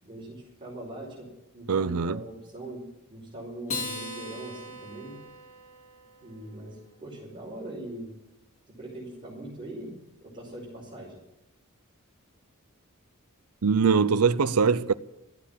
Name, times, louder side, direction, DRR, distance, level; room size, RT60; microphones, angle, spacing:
voice 1, 0.0-2.8 3.1-5.2 6.2-8.1 8.8-9.9 10.2-11.2, right 1 dB, 25° right, 4.7 m, -41 dB
voice 2, 1.7-2.2 13.6-14.9, right 5 dB, 85° right, 0.6 m, -22 dB
Acoustic guitar, 3.7-6.3, left 2 dB, 30° left, 2.7 m, -38 dB
14.0 x 8.4 x 10.0 m
head